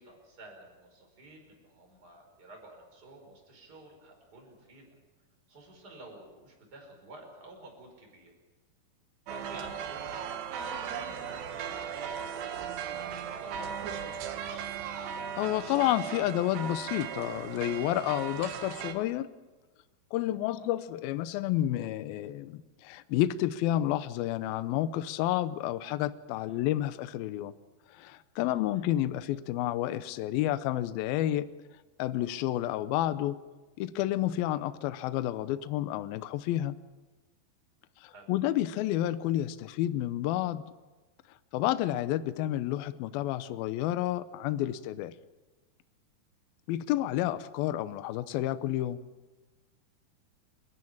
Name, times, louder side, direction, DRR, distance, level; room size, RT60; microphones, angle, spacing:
voice 1, 0.0-5.0 5.5-8.3 9.3-14.3 20.4-20.7 26.5-26.7 28.5-28.6 38.1-38.3, right 2 dB, 20° right, 1 dB, 5.6 m, -51 dB
sound 1, 9.3-18.9, right 7 dB, 80° right, 3.6 m, -37 dB
voice 2, 14.9-19.3 20.1-27.5 27.9-31.5 32.0-33.4 33.8-36.7 38.0-40.6 41.5-45.1 46.7-49.0, left 13 dB, 75° left, 13 dB, 2.4 m, -30 dB
29.0 x 13.0 x 8.6 m, 1.2 s
omnidirectional pair, 4.7 m